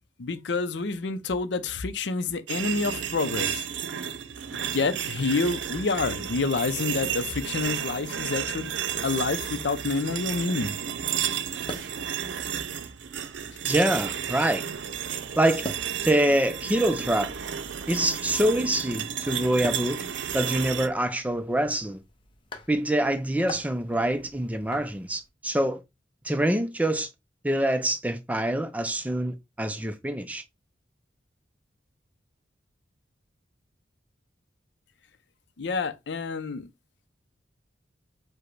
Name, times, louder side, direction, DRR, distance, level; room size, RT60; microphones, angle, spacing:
voice 1, 0.2-3.7 4.5-8.7 9.0-10.7 35.6-36.7, left 4 dB, 75° left, 0.5 m, -28 dB
sound 1, 2.5-20.9, right 8 dB, 85° right, 0.5 m, -32 dB
sound 2, 5.5-25.3, left 1 dB, 25° left, 0.7 m, -47 dB
voice 2, 13.6-14.6 15.4-15.6 16.0-17.3 17.9-20.0 20.3-22.0 22.7-25.8 26.2-27.1 27.4-30.4, right 1 dB, 10° right, 0.4 m, -25 dB
4.9 x 2.2 x 4.5 m
head